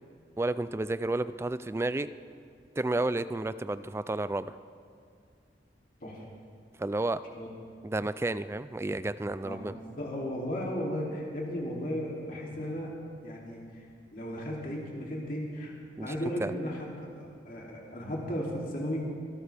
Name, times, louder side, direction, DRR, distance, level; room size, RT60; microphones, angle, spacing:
voice 1, 0.4-2.1 2.8-4.6 6.8-7.2 7.8-9.7 16.0-16.5, right 2 dB, 15° right, 14 dB, 0.3 m, -31 dB
voice 2, 9.4-12.9 13.2-13.8 14.1-15.7 16.0-19.0, equal, 50° left, -3 dB, 2.8 m, -35 dB
26.0 x 12.5 x 3.4 m, 2.2 s
head